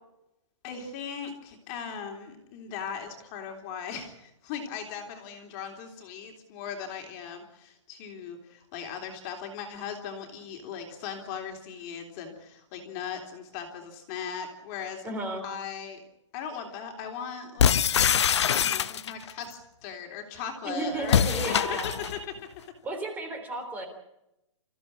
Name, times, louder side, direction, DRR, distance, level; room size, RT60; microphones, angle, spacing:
voice 1, 0.6-15.1 15.4-16.0 16.3-17.8 18.6-21.8 22.1-22.3, left 7 dB, 25° left, 3 dB, 3.5 m, -38 dB
voice 2, 15.0-15.4 20.7-22.0 22.8-23.9, right 2 dB, 10° right, 6 dB, 3.4 m, -33 dB
sound 1, 17.6-19.3 21.0-22.2, left 8 dB, 60° left, 0.9 m, -23 dB
27.0 x 15.0 x 8.6 m, 0.89 s
hypercardioid pair, 165°, 16 cm